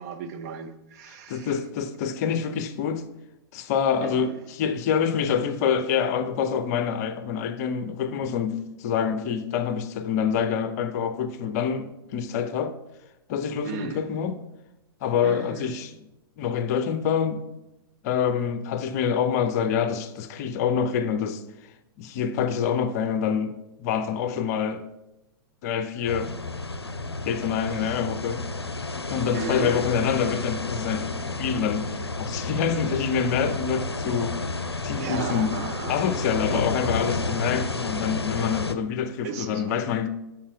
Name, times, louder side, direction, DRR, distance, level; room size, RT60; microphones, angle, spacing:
voice 1, 0.0-1.6 4.0-4.4 13.6-14.1 15.2-15.8 27.7-28.0 29.3-29.9 31.0-31.1 34.3-36.1 36.5-36.7 39.2-39.7, right 6 dB, 40° right, 0.7 m, -36 dB
voice 2, 1.3-3.0 3.5-12.8 13.3-14.4 15.0-15.9 16.4-17.4 18.0-21.4 22.0-23.5 23.8-24.8 25.6-26.3 27.2-28.5 29.1-34.5 34.8-35.5 35.9-40.1, left 7 dB, 40° left, 0.6 m, -26 dB
sound 1, 26.1-38.8, left 3 dB, 85° left, 0.5 m, -31 dB
7.3 x 4.5 x 4.9 m
figure-of-eight pair, 105°, 13 cm